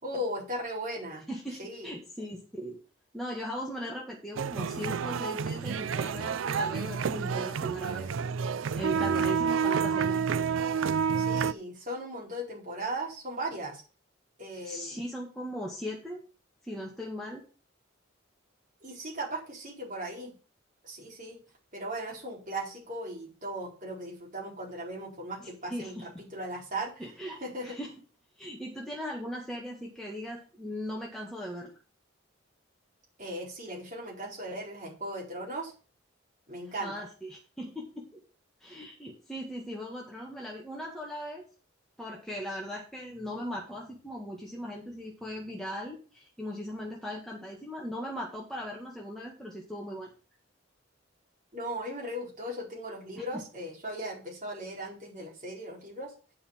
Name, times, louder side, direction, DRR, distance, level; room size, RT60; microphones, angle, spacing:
voice 1, 0.0-1.2 1.6-1.9 9.1-9.3 11.2-13.8 14.4-15.0 18.8-20.3 20.8-21.4 21.7-27.0 27.4-27.8 33.2-35.7 36.5-36.9 51.5-56.1, right 1 dB, 40° right, -3 dB, 4.5 m, -37 dB
voice 2, 1.3-2.8 3.1-8.1 8.7-10.2 14.6-16.2 16.6-17.4 25.4-26.1 27.0-27.9 28.4-31.7 36.8-38.1 38.6-41.4 42.0-50.1, equal, ahead, -3 dB, 1.7 m, -38 dB
sound 1, 4.4-11.5, right 6 dB, 80° right, 0.4 m, -29 dB
9.1 x 5.5 x 7.1 m, 0.36 s
head